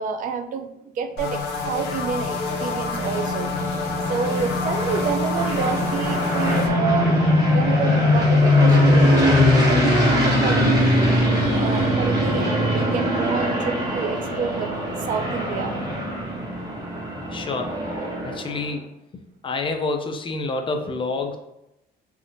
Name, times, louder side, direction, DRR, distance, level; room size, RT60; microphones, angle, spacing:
voice 1, 0.0-1.4 1.7-10.9 11.3-14.7 15.0-15.8, right 6 dB, 55° right, 7 dB, 0.4 m, -29 dB
sound 1, 1.2-6.7, left 5 dB, 75° left, 0.6 m, -29 dB
sound 2, 1.6-18.6, left 1 dB, 20° right, 1.2 m, -21 dB
voice 2, 17.3-17.8 18.2-18.9 19.4-21.4, left 3 dB, 30° left, 4 dB, 0.4 m, -28 dB
3.4 x 2.5 x 2.5 m, 0.86 s
cardioid pair, 110°, 17 cm